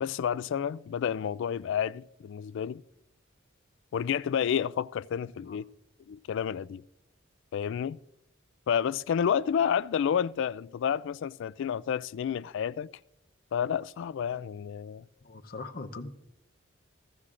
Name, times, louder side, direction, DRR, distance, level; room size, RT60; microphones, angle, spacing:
voice 1, 0.0-2.8 3.9-5.7 6.1-6.8 7.5-8.0 8.7-12.9 13.5-15.0, left 8 dB, 65° left, 0.3 m, -30 dB
voice 2, 15.2-16.1, left 3 dB, 50° left, 0.7 m, -41 dB
16.0 x 15.0 x 2.5 m
head